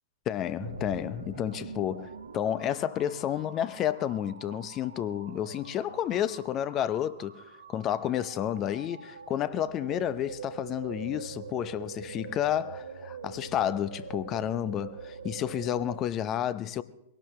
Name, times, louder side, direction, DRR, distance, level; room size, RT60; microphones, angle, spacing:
voice 1, 0.3-7.4 7.7-16.8, left 11 dB, 30° left, 0.7 m, -31 dB
sound 1, 0.6-16.0, right 5 dB, 75° right, 1.0 m, -44 dB
22.5 x 18.0 x 3.2 m
figure-of-eight pair, 100°, 0 cm